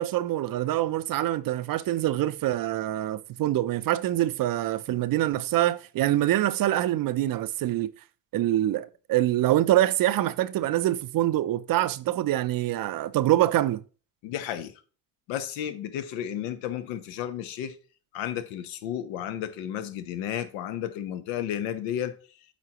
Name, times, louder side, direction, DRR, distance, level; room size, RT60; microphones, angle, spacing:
voice 1, 0.0-7.9 8.3-13.8, right 14 dB, 50° right, 0.6 m, -25 dB
voice 2, 14.2-14.7 15.3-17.8 18.1-22.1, left 10 dB, 80° left, 1.0 m, -32 dB
8.2 x 4.5 x 2.9 m
supercardioid pair, 80°, 45 cm